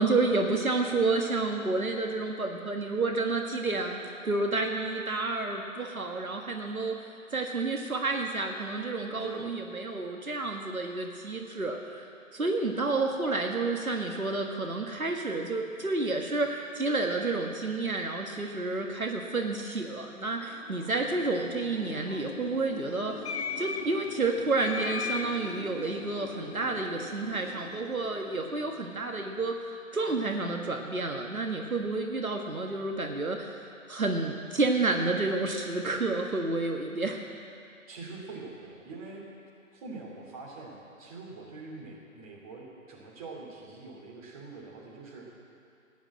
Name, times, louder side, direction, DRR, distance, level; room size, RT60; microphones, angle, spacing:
voice 1, 0.0-7.0 7.3-12.1 12.3-23.2 23.6-29.6 29.9-33.6 33.9-37.2, right 3 dB, 80° right, 2 dB, 1.7 m, -30 dB
voice 2, 9.2-9.6 37.9-39.2 39.7-45.3, right 3 dB, 25° right, -3 dB, 3.0 m, -44 dB
sound 1, 20.6-29.1, left 5 dB, 50° left, 0.8 m, -40 dB
16.0 x 10.5 x 7.7 m, 2.5 s
figure-of-eight pair, 145°, 42 cm